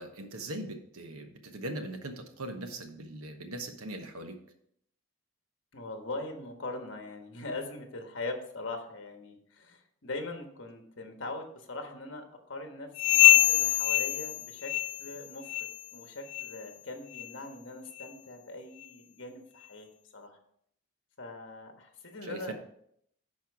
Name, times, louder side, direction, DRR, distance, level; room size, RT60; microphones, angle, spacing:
voice 1, 0.0-4.4 22.2-22.5, right 1 dB, 80° right, 6 dB, 1.1 m, -40 dB
voice 2, 5.7-14.7 15.0-19.9 20.1-20.4 21.2-22.5, left 2 dB, 55° left, 4 dB, 1.4 m, -41 dB
sound 1, 13.0-15.2 15.4-15.8 16.3-16.5 17.1-17.3 18.0-18.1 18.8-18.9, left 14 dB, 80° left, 0.3 m, -24 dB
10.5 x 4.5 x 4.7 m, 0.70 s
head